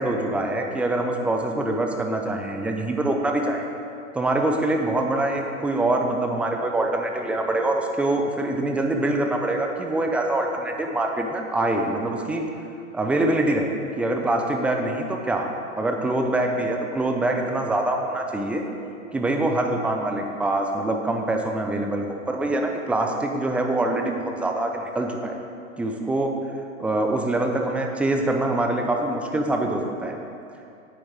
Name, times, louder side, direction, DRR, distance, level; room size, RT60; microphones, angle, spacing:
voice 1, 0.0-3.7 4.1-12.5 12.9-13.7 14.0-15.5 15.8-18.6 19.1-25.4 25.8-26.3 26.8-30.2, right 2 dB, 5° right, 2 dB, 0.4 m, -24 dB
9.8 x 8.7 x 4.7 m, 2.6 s
figure-of-eight pair, 105°, 40 cm